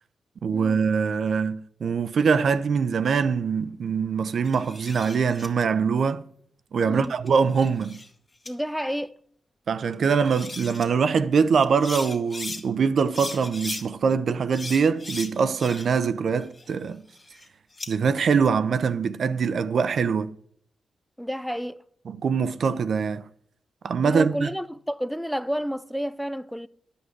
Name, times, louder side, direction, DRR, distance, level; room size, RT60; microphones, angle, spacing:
voice 1, 0.4-6.2 6.7-8.0 9.7-17.0 17.9-20.3 22.1-23.3 23.8-24.5, right 6 dB, 65° right, 0.7 m, -23 dB
sound 1, 4.4-5.5 7.0-8.1 8.4-8.5 9.9-10.0 10.2-10.9 11.6-12.6 13.1-13.8 14.5-16.0 16.4-17.9, left 2 dB, 35° left, 1.7 m, -38 dB
voice 2, 8.5-9.2 21.2-21.8 24.0-26.7, equal, ahead, 0.6 m, -30 dB
11.5 x 5.3 x 8.0 m
supercardioid pair, 40°, 0 cm